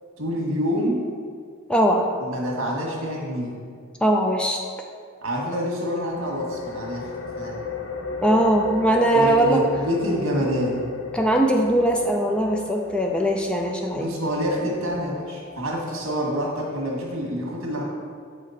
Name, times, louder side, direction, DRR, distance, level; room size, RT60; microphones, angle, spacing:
voice 1, 0.2-1.0 2.2-3.5 5.2-7.1 7.4-7.6 9.1-10.8 13.9-17.8, equal, 75° right, -2 dB, 1.8 m, -27 dB
voice 2, 1.7-2.1 4.0-4.6 8.2-9.6 11.1-14.1, right 1 dB, 5° left, 1 dB, 0.4 m, -20 dB
sound 1, 5.8-17.2, left 5 dB, 65° left, 0.7 m, -36 dB
7.8 x 5.1 x 4.2 m, 2.1 s
head